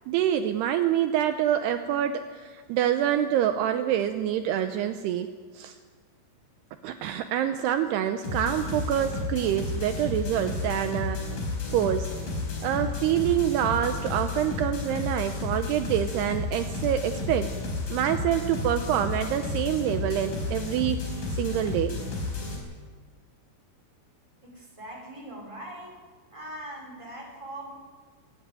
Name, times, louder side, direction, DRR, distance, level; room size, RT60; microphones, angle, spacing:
voice 1, 0.1-5.3 5.5-5.8 6.8-11.2 11.7-12.1 12.6-17.5 17.9-21.0 21.4-22.0, right 10 dB, 85° right, 8 dB, 2.3 m, -26 dB
sound 1, 8.2-22.6, left 3 dB, 45° left, 6.0 m, -32 dB
voice 2, 24.4-26.0 26.3-27.7, right 1 dB, 5° right, 0 dB, 3.9 m, -41 dB
23.0 x 14.0 x 9.1 m, 1.5 s
omnidirectional pair, 5.6 m